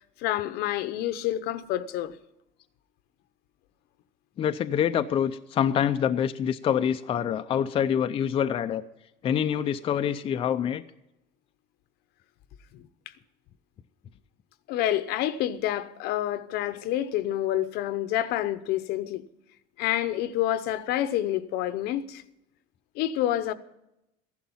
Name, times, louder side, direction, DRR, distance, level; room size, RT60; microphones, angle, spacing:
voice 1, 0.2-2.1 12.7-12.9 14.7-19.2 19.8-22.2 22.9-23.5, left 13 dB, 65° left, 0.9 m, -28 dB
voice 2, 4.4-8.8 9.2-10.8, left 9 dB, 30° left, 0.5 m, -26 dB
15.0 x 11.5 x 5.5 m
cardioid pair, 155°, 17 cm